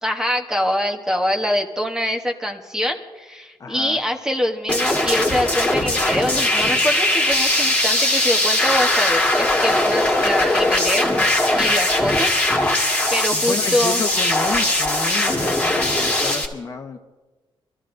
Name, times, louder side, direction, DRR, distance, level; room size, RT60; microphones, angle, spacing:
voice 1, 0.0-12.4 13.1-14.0, equal, 5° right, 3 dB, 0.9 m, -24 dB
voice 2, 3.6-4.0 13.3-17.0, left 4 dB, 35° left, 5 dB, 0.9 m, -30 dB
sound 1, 4.7-16.5, left 1 dB, 15° left, 1.7 m, -20 dB
25.0 x 13.5 x 2.6 m, 1.2 s
wide cardioid pair, 145°, 9 cm